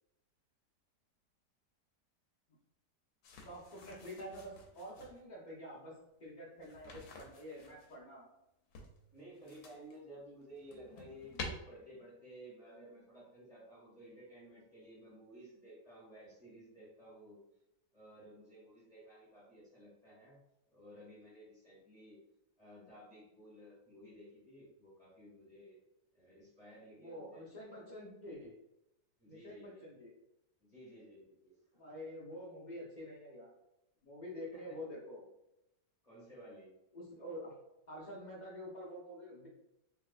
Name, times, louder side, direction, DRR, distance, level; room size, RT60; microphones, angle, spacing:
sound 1, 3.2-5.2 6.6-7.9 8.7-10.0 10.4-11.5, left 4 dB, 85° left, 1.3 m, -50 dB
voice 1, 3.4-8.3 26.9-28.5 29.3-30.1 31.7-33.5 34.0-35.2 36.9-37.5 37.9-39.5, equal, 45° left, -5 dB, 0.6 m, -47 dB
voice 2, 9.1-17.4 17.9-20.4 20.7-22.2 22.6-25.8 26.1-27.7 29.2-30.0 30.6-31.9 34.5-34.8 36.0-36.7, equal, 25° left, -7 dB, 1.0 m, -55 dB
3.5 x 2.9 x 2.4 m, 0.87 s
omnidirectional pair, 1.8 m